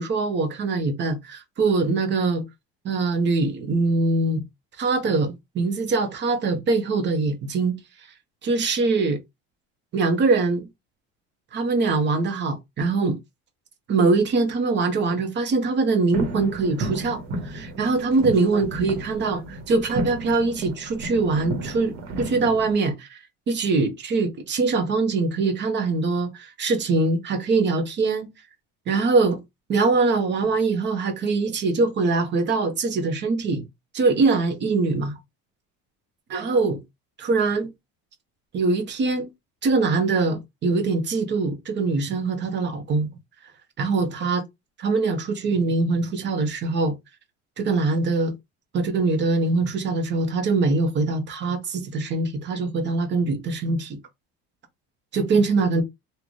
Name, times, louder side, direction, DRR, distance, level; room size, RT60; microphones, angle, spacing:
voice 1, 0.0-2.4 2.8-4.4 4.8-7.8 8.4-9.2 9.9-10.7 11.5-13.2 13.9-23.2 23.5-28.3 28.9-29.4 29.7-33.6 33.9-35.2 36.3-36.8 37.2-37.7 38.5-39.3 39.6-43.1 43.8-44.4 44.8-46.9 47.6-48.3 48.7-54.0 55.1-55.8, right 3 dB, 40° right, 1.1 m, -23 dB
sound 1, 16.1-22.7, right 1 dB, 60° right, 1.3 m, -33 dB
3.8 x 2.5 x 3.2 m
cardioid pair, 130°, 29 cm